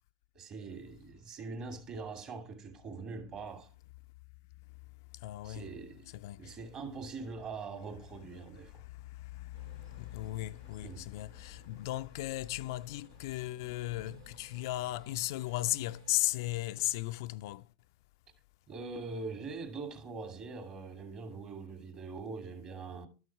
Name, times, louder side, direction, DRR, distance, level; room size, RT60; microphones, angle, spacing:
voice 1, 0.3-3.7 5.4-6.1 6.4-8.8 10.8-11.1 18.7-23.1, right 4 dB, 40° right, 2.6 m, -43 dB
voice 2, 5.1-5.7 6.1-6.6 8.5-17.7, left 17 dB, 65° left, 0.4 m, -36 dB
sound 1, 9.5-17.0, right 3 dB, 85° right, 2.4 m, -58 dB
12.0 x 6.2 x 4.7 m
hypercardioid pair, 100°, 2 cm